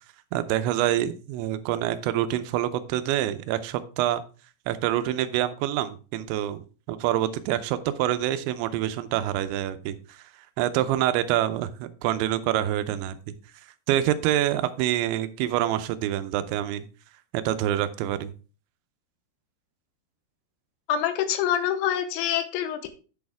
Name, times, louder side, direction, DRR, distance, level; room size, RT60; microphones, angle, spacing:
voice 1, 0.3-4.2 4.7-10.2 10.6-13.3 13.9-16.9 17.3-18.3, right 12 dB, 85° right, 12 dB, 3.0 m, -26 dB
voice 2, 20.9-22.9, left 10 dB, 85° left, 9 dB, 3.2 m, -26 dB
8.8 x 6.3 x 3.5 m, 0.36 s
omnidirectional pair, 5.2 m